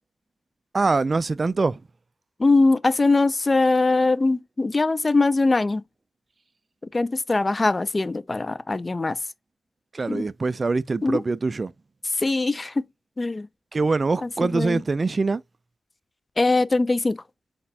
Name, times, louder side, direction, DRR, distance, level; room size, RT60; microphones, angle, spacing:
voice 1, 0.7-1.8 9.9-11.7 13.7-15.4, right 3 dB, 35° right, 0.3 m, -24 dB
voice 2, 2.4-5.8 6.9-9.2 10.1-10.3 11.0-11.2 12.2-12.9 13.2-13.5 14.2-14.8 16.4-17.2, left 3 dB, 30° left, 0.4 m, -22 dB
4.2 x 4.2 x 2.7 m
wide cardioid pair, 95°, 0 cm